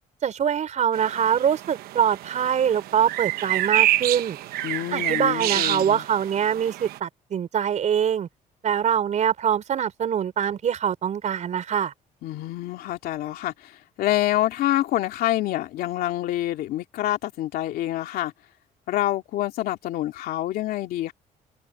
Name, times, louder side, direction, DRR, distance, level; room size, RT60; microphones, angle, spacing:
voice 1, 0.2-4.4 4.9-8.3 8.6-11.9, right 8 dB, 50° right, 5.0 m, -24 dB
sound 1, 0.9-7.0, right 14 dB, 85° right, 1.0 m, -28 dB
voice 2, 4.6-6.0 12.2-18.3 18.9-21.1, left 14 dB, 80° left, 2.7 m, -27 dB
cardioid pair, 110°, 15 cm